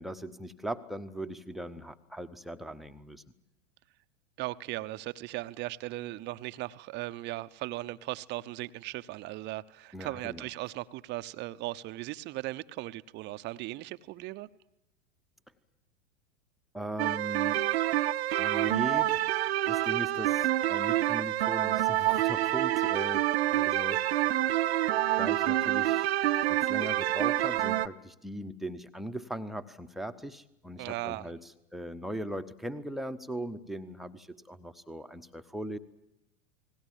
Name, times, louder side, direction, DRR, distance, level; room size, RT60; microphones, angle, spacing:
voice 1, 0.0-3.2 9.9-10.5 16.7-17.7 18.4-19.2 19.7-24.2 25.2-26.1 26.5-31.4 31.7-35.8, right 1 dB, ahead, 7 dB, 1.0 m, -39 dB
voice 2, 4.4-14.5 30.8-31.3, right 17 dB, 30° right, 13 dB, 0.9 m, -38 dB
sound 1, 17.0-27.9, right 14 dB, 55° right, 0.9 m, -27 dB
30.0 x 20.0 x 7.4 m, 0.86 s
figure-of-eight pair, 90°, 38 cm